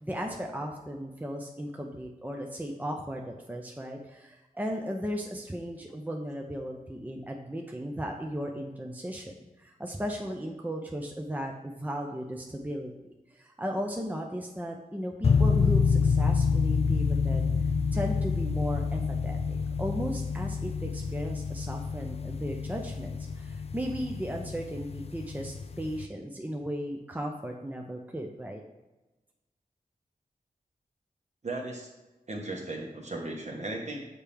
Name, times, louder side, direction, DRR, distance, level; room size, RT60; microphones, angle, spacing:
voice 1, 0.0-9.3 9.6-12.9 13.3-17.5 17.9-19.4 19.8-28.6, equal, 10° right, 1 dB, 0.7 m, -36 dB
sound 1, 15.2-26.0, left 5 dB, 40° left, 0.4 m, -28 dB
voice 2, 31.4-31.9 32.3-34.1, right 2 dB, 45° right, 1 dB, 1.4 m, -36 dB
6.7 x 4.4 x 3.5 m, 1.1 s
cardioid pair, 50°, 16 cm